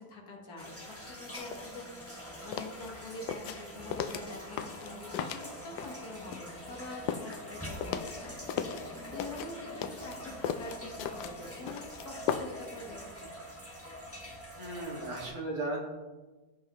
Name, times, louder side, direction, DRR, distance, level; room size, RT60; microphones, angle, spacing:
voice 1, 0.0-13.4, left 2 dB, 65° left, 1 dB, 1.9 m, -46 dB
sound 1, 0.6-15.3, equal, 10° left, 1.6 m, -45 dB
sound 2, 1.3-1.6 2.0-6.0 6.3-8.9 9.2-12.7 13.0-13.1, left 8 dB, 80° left, 1.2 m, -37 dB
voice 2, 2.3-2.7 14.5-15.9, right 2 dB, 60° right, -3 dB, 2.5 m, -37 dB
15.5 x 5.5 x 3.0 m, 1.2 s
omnidirectional pair, 1.8 m